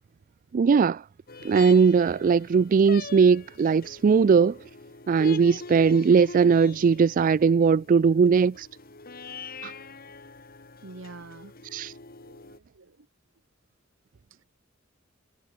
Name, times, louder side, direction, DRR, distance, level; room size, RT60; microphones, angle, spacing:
voice 1, 0.5-1.0 1.4-4.6 5.1-8.7 9.6-9.7 11.7-11.9, right 5 dB, 40° right, 0.3 m, -20 dB
sound 1, 1.3-12.6, left 4 dB, 50° left, 3.1 m, -43 dB
voice 2, 10.8-11.5 12.2-13.1 14.3-14.4, right 2 dB, 70° right, 1.4 m, -46 dB
head